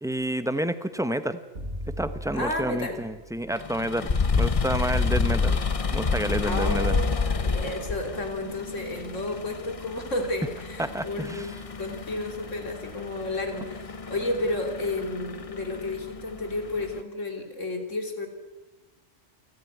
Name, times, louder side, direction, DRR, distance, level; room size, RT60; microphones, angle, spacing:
voice 1, 0.0-1.4 2.0-5.6 5.9-7.0 10.8-11.5, right 1 dB, 5° right, 11 dB, 0.9 m, -29 dB
Bowed string instrument, 1.5-7.7, equal, 70° right, 2.7 m, -42 dB
voice 2, 2.3-3.0 6.4-18.3, left 2 dB, 90° left, 4 dB, 3.4 m, -32 dB
sound 1, 3.5-17.0, left 4 dB, 35° left, 0.8 m, -29 dB
28.0 x 12.5 x 9.4 m, 1.2 s
omnidirectional pair, 1.2 m